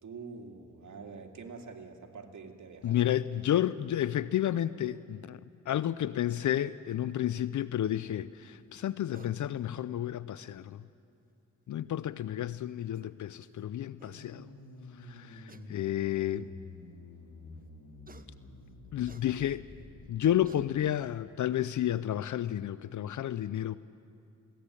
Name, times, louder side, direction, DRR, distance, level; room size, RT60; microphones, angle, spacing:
voice 1, 0.0-3.0, right 4 dB, 65° right, 2.4 m, -46 dB
voice 2, 2.8-5.4 5.7-10.8 11.7-14.5 15.0-16.5 18.9-19.7 20.1-23.8, left 11 dB, 65° left, 0.6 m, -31 dB
sound 1, 9.1-9.4 10.9-11.0 12.5-12.6 12.9-13.1 13.7-13.8 14.0-14.2 15.5-15.7 16.5-16.6 18.1-18.3 19.1-19.3 20.0-20.1 20.4-20.7, right 4 dB, 25° right, 1.1 m, -54 dB
sound 2, 14.0-20.8, left 2 dB, 80° left, 3.6 m, -50 dB
20.0 x 17.0 x 9.9 m
cardioid pair, 60°, 32 cm